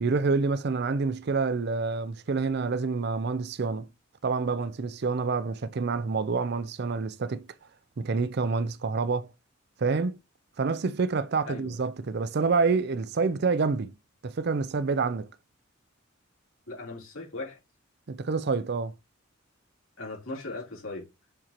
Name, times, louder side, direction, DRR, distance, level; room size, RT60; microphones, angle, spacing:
voice 1, 0.0-3.9 4.2-7.5 8.0-9.3 9.8-10.2 10.6-14.0 14.2-15.3 18.1-18.9, right 4 dB, 50° right, 0.5 m, -27 dB
voice 2, 11.4-11.8 16.7-17.6 20.0-21.1, left 2 dB, 80° left, 3.6 m, -38 dB
7.2 x 4.3 x 3.0 m
head